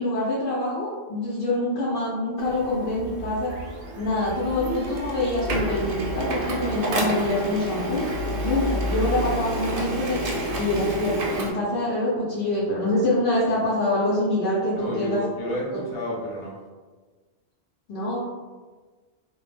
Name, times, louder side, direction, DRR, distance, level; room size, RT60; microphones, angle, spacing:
voice 1, 0.0-3.5 4.0-8.0 8.4-10.2 10.6-15.2 15.7-15.8 17.9-18.2, left 2 dB, 70° left, -7 dB, 0.8 m, -25 dB
Printer, 2.4-11.5, right 1 dB, 60° right, 0.7 m, -29 dB
voice 2, 14.7-16.6, equal, 35° left, -5 dB, 0.5 m, -31 dB
2.1 x 2.1 x 3.2 m, 1.4 s
omnidirectional pair, 1.1 m